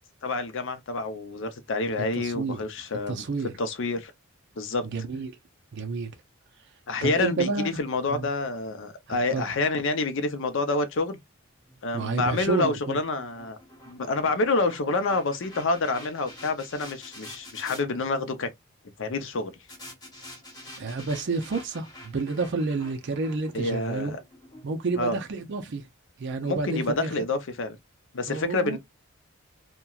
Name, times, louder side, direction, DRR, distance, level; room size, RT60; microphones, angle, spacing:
voice 1, 0.2-3.2 3.6-4.1 4.6-4.8 6.9-11.2 11.8-13.6 13.9-18.5 19.0-19.5 23.5-24.1 25.0-25.2 26.4-27.8 28.1-28.8, left 3 dB, 60° left, 0.6 m, -28 dB
voice 2, 2.1-2.6 3.1-3.5 4.8-5.3 5.7-6.1 7.0-7.8 8.1-8.3 9.1-9.4 11.9-13.0 20.8-24.2 24.6-25.9 26.2-27.2 28.3-28.8, right 4 dB, 55° right, 0.5 m, -30 dB
sound 1, 11.6-17.8 19.7-25.9, left 1 dB, 20° left, 1.2 m, -47 dB
2.9 x 2.2 x 2.3 m
head